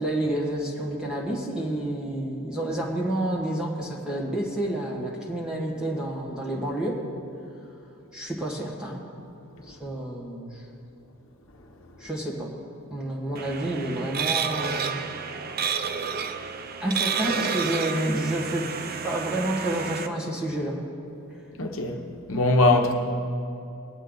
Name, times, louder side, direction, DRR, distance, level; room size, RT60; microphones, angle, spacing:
voice 1, 0.0-7.1 8.1-9.0 9.7-10.6 12.0-12.5 12.9-15.0 16.8-18.7 19.0-20.8 21.3-21.4, right 1 dB, 5° right, 1.6 m, -29 dB
sound 1, 13.4-20.1, right 6 dB, 45° right, 0.5 m, -30 dB
voice 2, 21.6-22.0 22.3-22.9, left 2 dB, 65° left, 1.0 m, -21 dB
20.0 x 8.0 x 3.9 m
head